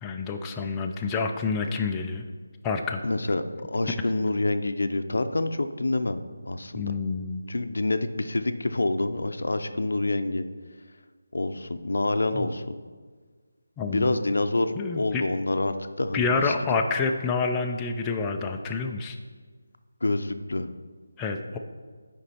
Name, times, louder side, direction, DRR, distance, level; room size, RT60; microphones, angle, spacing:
voice 1, 0.0-2.2 2.6-3.0 6.7-7.4 12.3-12.5 13.8-14.2 14.8-15.2 16.1-19.2 21.2-21.6, left 4 dB, 10° left, 2 dB, 0.4 m, -28 dB
voice 2, 3.0-6.9 7.5-10.5 11.3-12.8 13.9-16.5 20.0-20.7, left 2 dB, 80° left, 9 dB, 0.6 m, -27 dB
9.8 x 5.3 x 4.2 m, 1.5 s
figure-of-eight pair, 170°, 0 cm